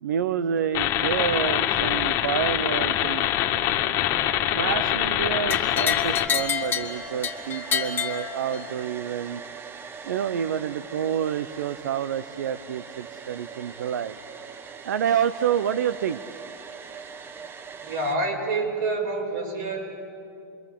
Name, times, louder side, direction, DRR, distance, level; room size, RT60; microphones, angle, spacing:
voice 1, 0.0-3.3 4.5-9.4 10.0-14.2 14.8-16.2, right 9 dB, 85° right, 14 dB, 0.7 m, -28 dB
sound 1, 0.7-6.3, left 12 dB, 50° left, 2.0 m, -24 dB
sound 2, 5.5-8.9, left 8 dB, 20° left, 2.2 m, -28 dB
Domestic sounds home sounds, 6.4-18.2, right 6 dB, 25° right, 1.1 m, -41 dB
voice 2, 17.8-19.8, right 2 dB, 70° right, 0 dB, 6.6 m, -27 dB
28.0 x 21.5 x 8.5 m, 2.5 s
hypercardioid pair, 115°, 9 cm